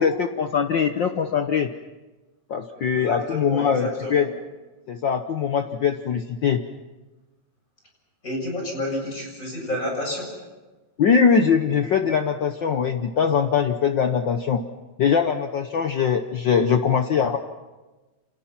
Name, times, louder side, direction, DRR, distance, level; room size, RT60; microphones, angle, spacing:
voice 1, 0.0-1.7 2.5-4.3 4.9-6.6 11.0-14.6 15.0-17.4, left 6 dB, 75° left, 7 dB, 1.0 m, -22 dB
voice 2, 2.8-4.2 8.2-10.3, left 1 dB, 25° left, 0 dB, 7.6 m, -30 dB
29.0 x 27.0 x 5.9 m, 1.2 s
omnidirectional pair, 3.3 m